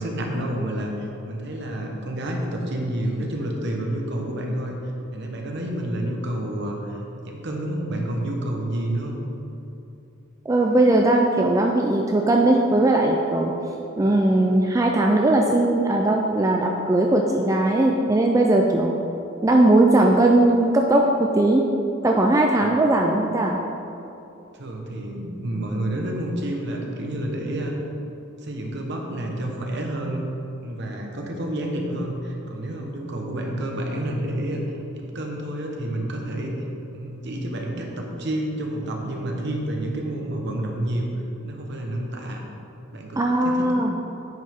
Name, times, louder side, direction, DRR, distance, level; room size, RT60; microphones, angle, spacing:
voice 1, 0.0-4.8 5.1-9.2 22.6-22.7 24.5-27.8 28.4-30.3 30.6-36.7 36.9-41.1 41.4-42.4 42.9-43.7, right 1 dB, 55° right, 1 dB, 1.1 m, -29 dB
voice 2, 10.5-13.5 14.0-18.9 19.4-21.0 21.3-21.6 22.0-23.6 43.2-43.9, right 2 dB, 15° right, 1 dB, 0.3 m, -19 dB
9.2 x 5.3 x 3.5 m, 2.8 s
head